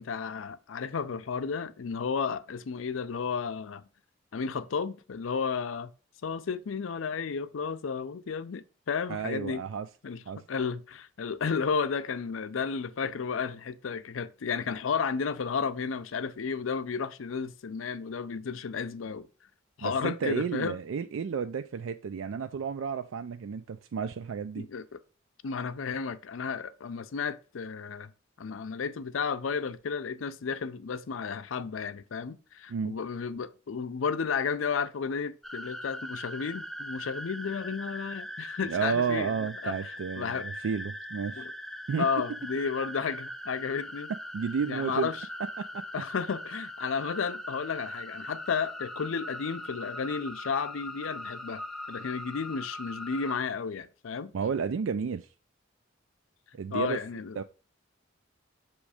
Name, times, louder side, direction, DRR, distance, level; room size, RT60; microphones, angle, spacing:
voice 1, 0.0-3.8 4.3-5.9 6.2-9.6 10.0-10.2 10.5-19.3 19.8-20.8 24.6-25.0 25.4-28.1 28.4-40.4 41.4-41.5 42.0-44.1 44.7-45.2 45.9-51.6 51.9-54.3 56.7-57.4, left 5 dB, 90° left, 0.5 m, -33 dB
voice 2, 9.1-9.9 10.3-10.4 19.8-24.7 32.7-32.9 38.6-41.5 41.9-42.1 44.3-45.1 45.6-45.8 54.3-55.3 56.5-57.0 57.4-57.5, right 6 dB, 85° right, 0.4 m, -32 dB
sound 1, 35.4-53.4, left 1 dB, ahead, 0.4 m, -41 dB
7.1 x 3.1 x 4.8 m
head